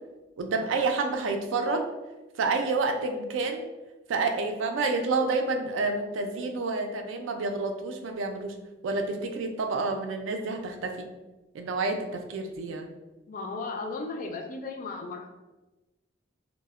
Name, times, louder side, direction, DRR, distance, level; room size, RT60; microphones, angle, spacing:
voice 1, 0.4-1.9 2.4-3.7 4.1-8.5 8.8-11.0 11.5-12.9, right 3 dB, 80° right, 5 dB, 0.4 m, -29 dB
voice 2, 13.3-15.4, left 3 dB, 45° left, 3 dB, 0.3 m, -35 dB
2.1 x 2.0 x 3.4 m, 1.1 s
head